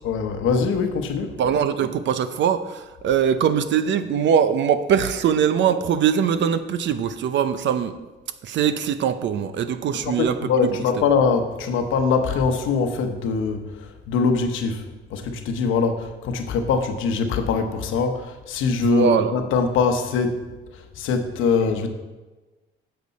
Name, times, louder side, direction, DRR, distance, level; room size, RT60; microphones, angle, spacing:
voice 1, 0.0-1.4 9.9-20.5 20.7-21.9, left 5 dB, 85° left, 6 dB, 0.9 m, -23 dB
voice 2, 1.4-8.0 8.4-10.8 18.8-19.3, right 8 dB, 65° right, 12 dB, 0.6 m, -22 dB
9.2 x 6.8 x 4.1 m, 1.2 s
cardioid pair, 90°, 20 cm